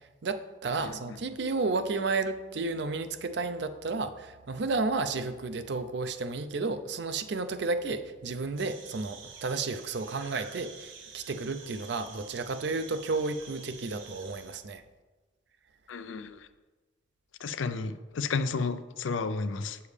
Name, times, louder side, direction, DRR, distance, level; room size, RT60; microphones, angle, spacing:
voice 1, 0.2-14.8, right 3 dB, 65° right, 10 dB, 0.5 m, -32 dB
voice 2, 0.8-1.2 15.9-16.5 17.4-19.8, left 4 dB, 90° left, 12 dB, 0.4 m, -32 dB
sound 1, 8.6-14.6, right 5 dB, 85° right, 0.8 m, -49 dB
8.2 x 6.9 x 3.3 m, 1.2 s
head